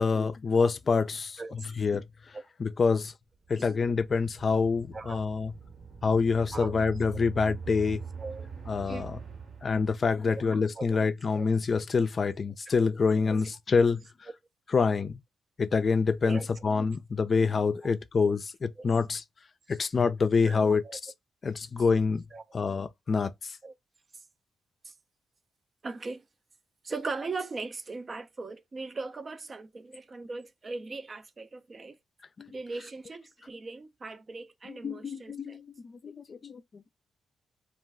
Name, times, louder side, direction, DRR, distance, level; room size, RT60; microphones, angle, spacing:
voice 1, 0.0-1.4 1.8-2.0 2.6-3.1 3.5-5.5 6.0-8.0 8.7-9.2 9.6-14.0 14.7-15.2 15.6-19.2 19.7-20.8 21.4-22.2 22.5-23.5 32.4-32.5 34.7-36.6, left 5 dB, 50° left, 0.3 m, -26 dB
sound 1, 3.5-10.4, right 6 dB, 70° right, 1.1 m, -43 dB
voice 2, 6.5-6.8 7.7-7.8 8.2-8.5 8.8-9.1 10.3-11.4 12.7-12.9 13.2-13.4 16.3-16.5 17.8-17.9 18.8-18.9 19.7-19.8 20.5-20.6 20.8-21.0 22.3-22.6 23.6-23.7 24.8-24.9 25.8-26.2 26.8-32.0 32.5-35.6, right 3 dB, 45° right, 0.4 m, -39 dB
2.4 x 2.2 x 3.3 m
hypercardioid pair, 45°, 0 cm